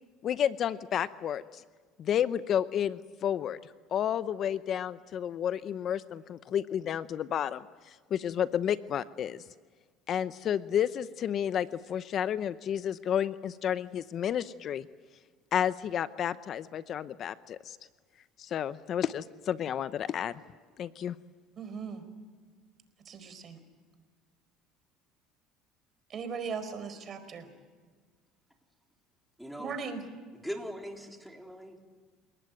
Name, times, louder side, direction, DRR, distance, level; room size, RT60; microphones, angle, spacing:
voice 1, 0.2-1.6 2.0-3.6 3.9-9.4 10.1-14.9 15.5-17.8 18.4-20.4 20.8-21.2, left 9 dB, 45° left, 14 dB, 0.8 m, -31 dB
voice 2, 21.6-22.0 23.0-23.6 26.1-27.5 29.6-30.0, right 5 dB, 40° right, 10 dB, 4.7 m, -38 dB
voice 3, 29.4-29.7 30.4-31.8, equal, ahead, 2 dB, 3.7 m, -40 dB
29.5 x 19.0 x 9.2 m, 1.5 s
supercardioid pair, 110°, 0 cm